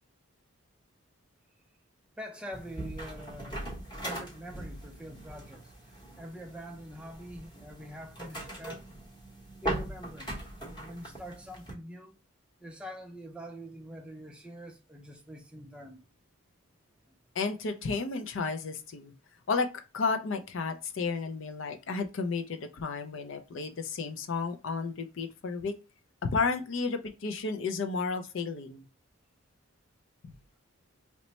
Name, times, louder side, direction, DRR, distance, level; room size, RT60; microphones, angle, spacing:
voice 1, 2.2-3.7 4.0-5.7 6.2-8.9 9.6-10.4 10.8-12.2 12.6-16.0, equal, 5° right, 0.4 m, -44 dB
sound 1, 2.5-11.7, right 1 dB, 20° left, 0.9 m, -40 dB
voice 2, 17.4-19.1 19.5-19.7 19.9-25.8 26.2-28.9 30.2-30.3, left 4 dB, 60° left, 0.4 m, -32 dB
3.0 x 2.1 x 4.0 m
head